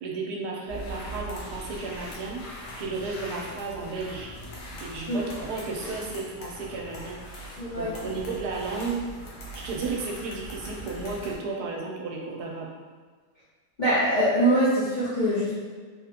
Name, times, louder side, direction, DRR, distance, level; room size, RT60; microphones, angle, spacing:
voice 1, 0.0-2.4 2.8-4.3 4.8-7.2 7.8-9.0 9.5-12.7, right 3 dB, 75° right, -1 dB, 1.1 m, -33 dB
sound 1, 0.7-11.3, equal, 90° left, 1.3 m, -41 dB
voice 2, 7.6-7.9 13.8-15.5, right 1 dB, 45° left, -12 dB, 0.6 m, -23 dB
3.6 x 2.2 x 2.8 m, 1.5 s
omnidirectional pair, 1.7 m